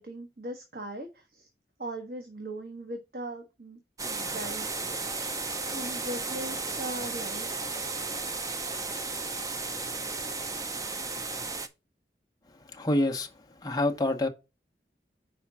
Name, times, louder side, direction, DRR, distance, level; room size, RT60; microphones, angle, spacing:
voice 1, 0.0-1.5 1.8-4.7 5.7-7.5, right 1 dB, 55° right, 1.1 m, -39 dB
sound 1, 4.0-11.7, right 3 dB, 20° right, 0.5 m, -34 dB
voice 2, 12.7-13.3 13.6-14.3, left 1 dB, 20° left, 0.9 m, -26 dB
5.0 x 4.4 x 5.9 m
head